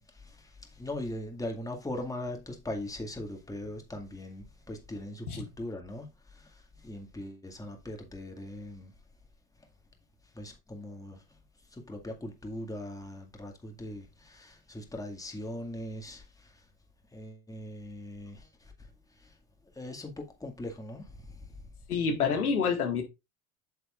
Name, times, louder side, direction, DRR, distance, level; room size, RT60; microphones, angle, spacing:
voice 1, 0.0-8.9 10.3-11.2 11.7-16.6 17.1-18.9 19.2-19.3 19.7-21.5, left 1 dB, 10° left, 2.0 m, -40 dB
voice 2, 21.9-23.0, left 5 dB, 90° left, 1.9 m, -27 dB
8.2 x 6.8 x 2.5 m
hypercardioid pair, 80°, 43 cm